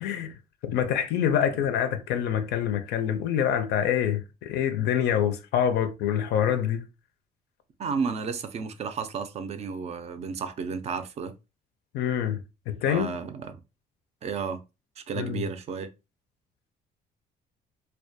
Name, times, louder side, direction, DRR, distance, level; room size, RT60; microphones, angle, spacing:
voice 1, 0.0-6.9 11.9-13.1 15.2-15.5, left 9 dB, 80° left, 0.4 m, -26 dB
voice 2, 7.8-11.3 12.9-13.6 14.2-14.6 15.0-15.9, right 5 dB, 40° right, 0.4 m, -32 dB
2.2 x 2.2 x 2.6 m
cardioid pair, 110°, 17 cm